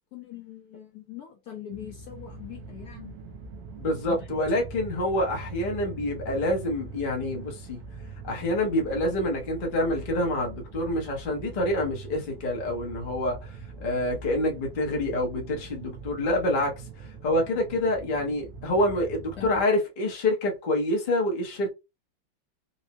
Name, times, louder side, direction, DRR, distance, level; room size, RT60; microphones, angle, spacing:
voice 1, 0.0-3.1 4.0-4.3 19.4-19.5, left 10 dB, 65° left, 1.1 m, -42 dB
sound 1, 1.7-19.6, right 4 dB, 60° right, 0.9 m, -42 dB
voice 2, 3.7-7.8 8.2-13.6 13.8-16.7 17.2-21.7, left 1 dB, 40° left, 0.7 m, -27 dB
4.3 x 2.0 x 2.8 m
omnidirectional pair, 2.1 m